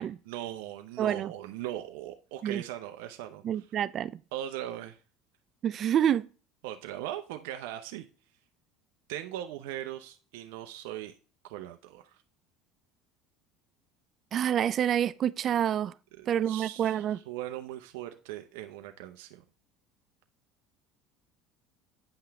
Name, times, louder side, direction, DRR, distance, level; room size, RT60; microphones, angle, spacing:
voice 1, 0.3-3.7 4.3-5.0 6.6-8.1 9.1-11.1 11.4-12.0 16.2-19.4, right 13 dB, 75° right, 0.7 m, -39 dB
voice 2, 1.0-1.3 2.4-2.6 3.4-4.1 5.6-6.3 14.3-15.9 16.3-17.2, right 10 dB, 45° right, 0.3 m, -27 dB
9.0 x 5.6 x 3.4 m
supercardioid pair, 90°, 0 cm